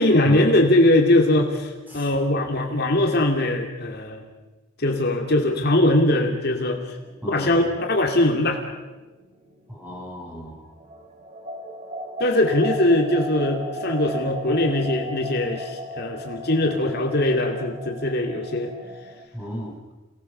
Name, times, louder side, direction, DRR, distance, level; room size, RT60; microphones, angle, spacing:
voice 1, 0.0-4.3 4.8-7.0 7.3-8.6 12.2-18.7, left 1 dB, 50° left, 3 dB, 2.5 m, -21 dB
sound 1, 6.9-10.5 10.8-19.3, equal, 35° right, 2.8 m, -36 dB
voice 2, 7.2-7.6 9.7-10.6 19.3-19.7, equal, 10° right, -2 dB, 6.4 m, -34 dB
28.0 x 19.0 x 6.8 m, 1.1 s
head